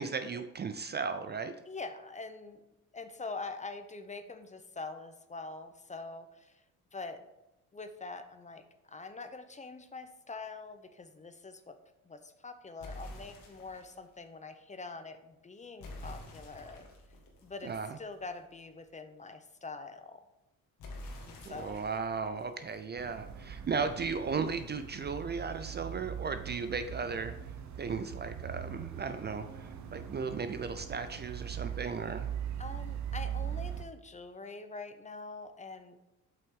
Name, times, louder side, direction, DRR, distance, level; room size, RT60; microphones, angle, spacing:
voice 1, 0.0-1.5 17.6-17.9 21.4-27.3 27.8-32.3, right 5 dB, 30° right, 10 dB, 0.5 m, -36 dB
voice 2, 1.7-2.6 2.9-6.6 6.9-7.2 7.7-11.8 12.0-16.9 17.4-20.2 21.3-21.8 32.6-36.0, left 3 dB, 20° left, 9 dB, 0.7 m, -44 dB
sound 1, 12.8-14.0 15.8-18.5 20.8-23.5, left 1 dB, 75° left, 1.8 m, -48 dB
sound 2, 23.0-33.9, right 9 dB, 55° right, 0.9 m, -41 dB
7.6 x 5.8 x 3.7 m, 0.93 s
cardioid pair, 90°, 34 cm